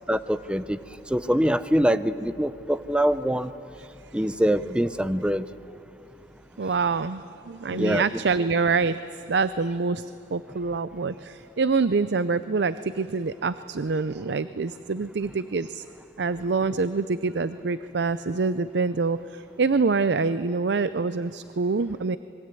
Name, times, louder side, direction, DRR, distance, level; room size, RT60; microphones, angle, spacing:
voice 1, 0.1-0.8 1.1-3.5 4.1-5.5 7.7-8.1, equal, 5° right, 14 dB, 0.6 m, -24 dB
voice 2, 6.6-9.0 9.3-15.8 16.2-22.2, right 4 dB, 65° right, 14 dB, 0.5 m, -26 dB
26.0 x 22.0 x 9.2 m, 2.7 s
head